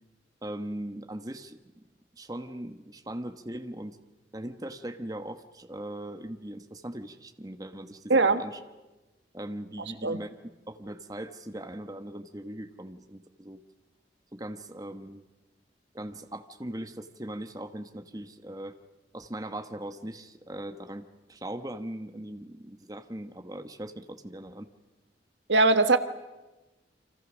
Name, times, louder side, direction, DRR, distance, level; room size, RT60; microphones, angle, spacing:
voice 1, 0.4-1.8 2.1-4.0 4.3-8.6 9.3-10.4 10.7-13.6 14.3-15.3 15.9-18.8 19.1-24.7, right 1 dB, 20° right, 1.2 m, -40 dB
voice 2, 8.1-8.4 10.0-10.2 25.5-26.0, right 3 dB, 85° right, 1.4 m, -20 dB
30.0 x 25.0 x 6.3 m
head